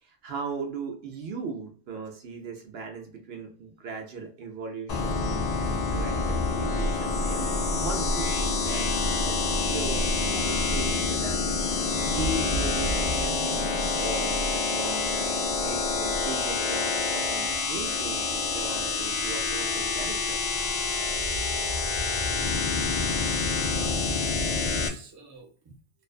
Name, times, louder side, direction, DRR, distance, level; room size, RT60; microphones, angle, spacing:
voice 1, 0.0-8.9 9.2-9.4 9.7-11.6 12.1-15.0 15.6-20.4, right 4 dB, 65° right, 2 dB, 0.8 m, -38 dB
sound 1, 4.9-24.9, left 3 dB, 60° left, 0.4 m, -27 dB
voice 2, 23.3-24.1 24.4-25.7, right 4 dB, 30° right, 0 dB, 0.5 m, -46 dB
2.5 x 2.2 x 2.3 m, 0.44 s
omnidirectional pair, 1.2 m